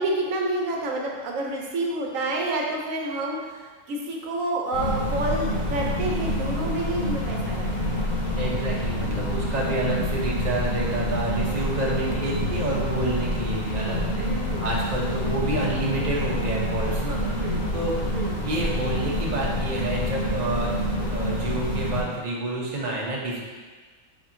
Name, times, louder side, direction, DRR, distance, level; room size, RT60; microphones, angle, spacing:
voice 1, 0.0-7.9 12.0-12.3 14.3-14.6 15.1-15.3 17.4-17.6 18.1-18.3, right 1 dB, 75° right, 0 dB, 1.1 m, -29 dB
sound 1, 4.7-22.0, left 1 dB, 85° left, 1.2 m, -27 dB
voice 2, 8.4-14.3 14.6-17.5 17.7-18.0 18.4-23.4, right 2 dB, 40° right, -3 dB, 0.7 m, -29 dB
4.2 x 2.8 x 3.6 m, 1.5 s
omnidirectional pair, 1.4 m